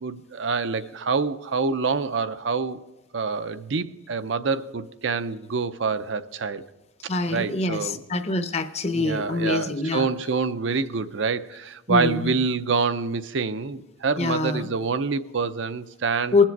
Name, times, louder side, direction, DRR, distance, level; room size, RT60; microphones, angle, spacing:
voice 1, 0.0-2.8 3.1-6.6 7.3-8.0 8.9-16.4, right 4 dB, 70° right, 0.6 m, -26 dB
voice 2, 7.1-10.1 11.9-12.4 14.2-14.7 16.3-16.4, left 3 dB, 30° left, 0.7 m, -25 dB
20.5 x 7.4 x 4.6 m
head